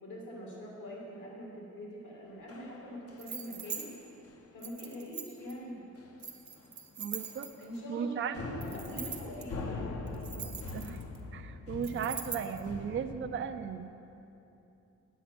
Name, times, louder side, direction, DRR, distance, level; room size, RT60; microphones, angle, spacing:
voice 1, 0.0-3.9 4.5-5.8 7.6-10.3, equal, 80° left, -4 dB, 2.5 m, -44 dB
sound 1, 2.5-3.4 3.7-4.0 4.2-4.5 4.8-5.0 5.4-5.5 6.0-6.3 6.6-6.7 7.1-8.0 8.3-13.3, left 3 dB, 50° left, 0.7 m, -43 dB
sound 2, 3.2-3.9 4.6-5.5 6.2-7.8 8.6-9.4 10.1-11.2 11.8-12.6, right 6 dB, 65° right, 1.0 m, -41 dB
voice 2, 7.0-7.5 7.9-8.4 10.4-11.0 11.3-13.9, right 7 dB, 40° right, 8 dB, 0.4 m, -36 dB
9.3 x 8.1 x 5.9 m, 2.9 s
wide cardioid pair, 160°, 30 cm